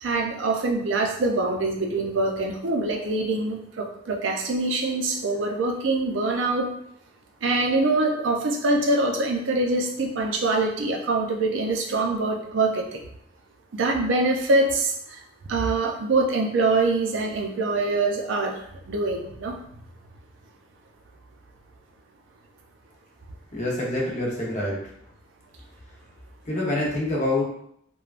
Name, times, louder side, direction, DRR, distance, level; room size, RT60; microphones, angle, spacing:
voice 1, 0.0-6.7 7.4-13.0 13.7-14.9 15.5-18.6 18.9-19.6, right 2 dB, 80° right, 2 dB, 0.5 m, -24 dB
voice 2, 23.5-24.8 26.4-27.4, left 1 dB, 40° left, -3 dB, 0.8 m, -26 dB
3.2 x 2.2 x 2.4 m, 0.70 s
head